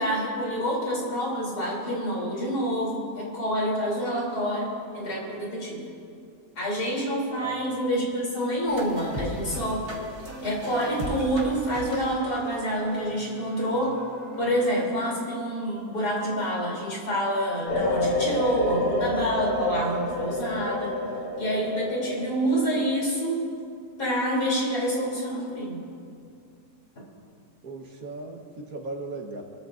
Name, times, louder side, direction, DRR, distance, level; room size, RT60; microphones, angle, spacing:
voice 1, 0.0-5.8 6.6-9.8 10.4-14.0 14.4-21.0 21.4-23.5 24.0-25.8, equal, 65° left, -4 dB, 3.9 m, -27 dB
sound 1, 8.7-14.7, right 1 dB, 40° right, 2.0 m, -37 dB
sound 2, 17.7-22.9, left 1 dB, 85° left, 3.3 m, -28 dB
voice 2, 27.6-29.4, right 2 dB, 60° right, 2 dB, 1.8 m, -37 dB
27.0 x 14.0 x 2.6 m, 2.5 s
omnidirectional pair, 1.8 m